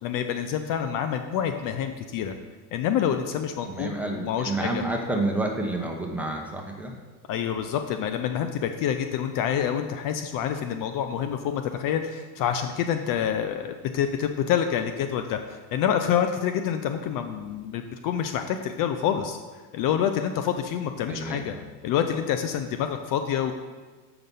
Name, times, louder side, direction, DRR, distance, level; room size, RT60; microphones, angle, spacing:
voice 1, 0.0-2.3 2.7-4.8 7.3-19.4 19.7-21.5 21.8-23.5, left 9 dB, 45° left, 7 dB, 0.6 m, -27 dB
voice 2, 3.6-6.9 21.1-21.6, right 2 dB, 5° right, 0 dB, 1.1 m, -29 dB
7.7 x 5.9 x 5.4 m, 1.4 s
supercardioid pair, 130°, 46 cm